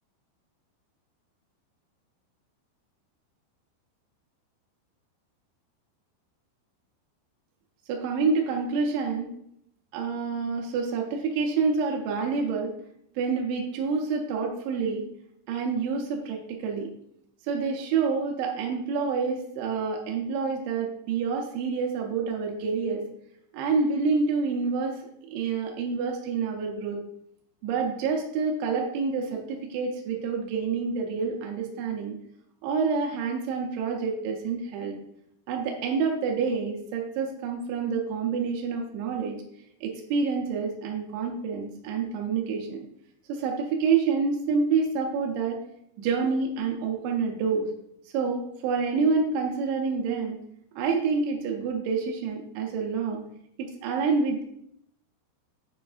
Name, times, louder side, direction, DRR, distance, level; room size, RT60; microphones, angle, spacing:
voice 1, 7.9-9.3 9.9-12.7 13.2-15.0 15.5-16.9 17.5-23.0 23.5-25.0 25.3-27.0 27.6-32.2 32.6-35.0 35.5-39.4 39.8-42.8 43.3-45.6 46.0-47.7 48.1-50.4 50.8-53.2 53.6-54.4, right 5 dB, 80° right, 0 dB, 2.9 m, -27 dB
9.1 x 4.7 x 2.5 m, 0.73 s
omnidirectional pair, 5.4 m